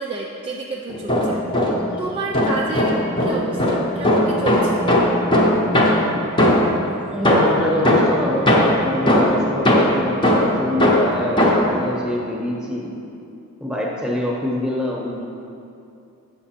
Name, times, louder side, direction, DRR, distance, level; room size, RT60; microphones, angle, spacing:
voice 1, 0.0-1.4 2.0-4.8, right 3 dB, 25° right, -2 dB, 0.4 m, -30 dB
sound 1, 0.9-2.0 2.3-6.8 7.2-11.8, left 1 dB, 20° left, 0.8 m, -18 dB
voice 2, 7.1-12.9 13.6-15.2, left 1 dB, 5° right, -3 dB, 1.1 m, -25 dB
7.9 x 5.9 x 4.3 m, 2.6 s
head